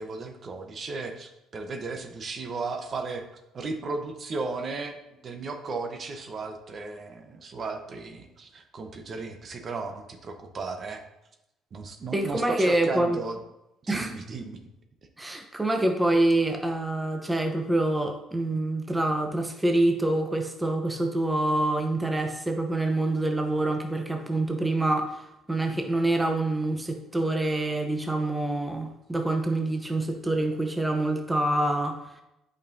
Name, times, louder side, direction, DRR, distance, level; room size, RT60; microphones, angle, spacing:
voice 1, 0.0-3.3 3.5-5.0 5.2-11.0 11.7-13.4 13.8-14.6, right 3 dB, 45° right, 5 dB, 0.9 m, -35 dB
voice 2, 12.1-13.2 13.9-14.1 15.2-25.2 25.5-32.0, right 2 dB, 10° right, 4 dB, 0.8 m, -26 dB
8.4 x 5.4 x 2.7 m, 0.88 s
cardioid pair, 95°, 0 cm